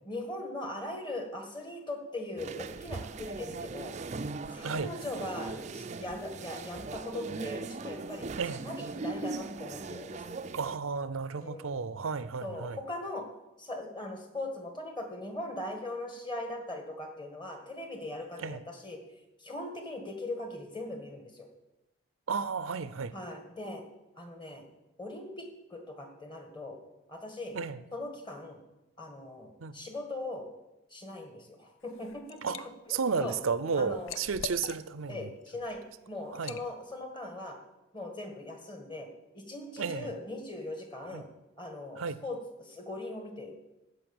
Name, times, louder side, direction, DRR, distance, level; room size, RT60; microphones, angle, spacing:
voice 1, 0.1-3.9 4.5-10.4 11.4-11.8 12.4-13.2 13.6-19.0 19.4-21.5 23.1-23.8 24.2-24.6 25.0-26.8 27.1-27.6 27.9-28.6 29.0-30.5 30.9-32.4 32.9-33.4 33.7-34.2 35.1-37.6 37.9-39.1 39.3-41.3 41.6-43.6, left 2 dB, 20° left, 1.7 m, -40 dB
sound 1, 2.4-10.8, right 3 dB, 35° right, 0.4 m, -39 dB
voice 2, 10.5-12.8 18.4-18.6 22.3-23.1 27.5-27.8 29.6-29.7 32.4-35.3 36.3-36.6 39.8-40.1 41.1-41.2 42.0-42.2, right 5 dB, 80° right, 0.5 m, -33 dB
Liquid, 31.8-32.6 33.1-35.2 35.6-35.8 36.3-36.7, left 8 dB, 80° left, 0.6 m, -43 dB
15.0 x 5.6 x 7.1 m
head